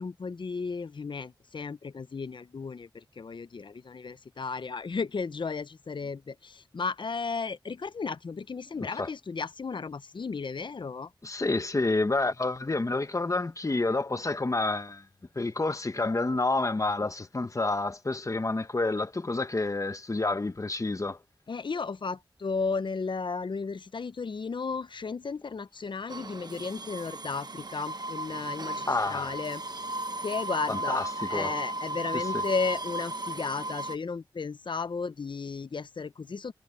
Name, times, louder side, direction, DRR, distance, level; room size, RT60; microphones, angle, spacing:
voice 1, 0.0-11.1 21.5-29.6 30.2-36.5, left 4 dB, 70° left, 0.7 m, -34 dB
voice 2, 11.2-15.0 15.4-21.2 28.9-29.3 30.7-31.5 32.1-32.4, left 2 dB, 40° left, 1.0 m, -29 dB
sound 1, 26.1-34.0, right 2 dB, 55° right, 1.1 m, -35 dB
wide cardioid pair, 75°, 9 cm